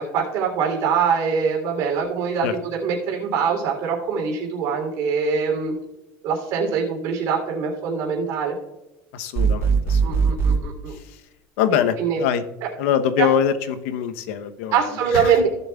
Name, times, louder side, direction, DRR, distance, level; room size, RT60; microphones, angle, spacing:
voice 1, 0.0-5.7 6.2-8.5 10.0-10.9 12.0-12.2 13.2-13.3 14.7-15.5, right 6 dB, 50° right, 0 dB, 2.9 m, -23 dB
voice 2, 9.1-10.4 10.9-11.2 11.6-12.4 12.8-14.8 15.1-15.3, left 8 dB, 85° left, 10 dB, 0.8 m, -24 dB
sound 1, 9.4-10.6, right 5 dB, 35° right, 0.9 m, -20 dB
16.0 x 7.0 x 2.3 m, 0.98 s
cardioid pair, 175°, 7 cm